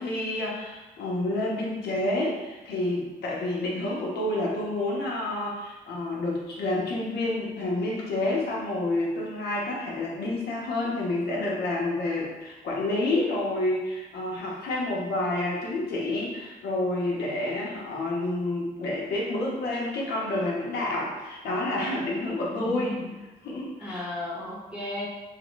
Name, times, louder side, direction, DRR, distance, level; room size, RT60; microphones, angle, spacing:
voice 1, 0.0-22.9 23.4-24.1, left 2 dB, 85° left, -4 dB, 1.1 m, -29 dB
voice 2, 22.2-23.1 23.8-25.1, left 2 dB, 5° right, -6 dB, 0.8 m, -35 dB
3.7 x 3.0 x 3.1 m, 1.1 s
cardioid pair, 155°, 16 cm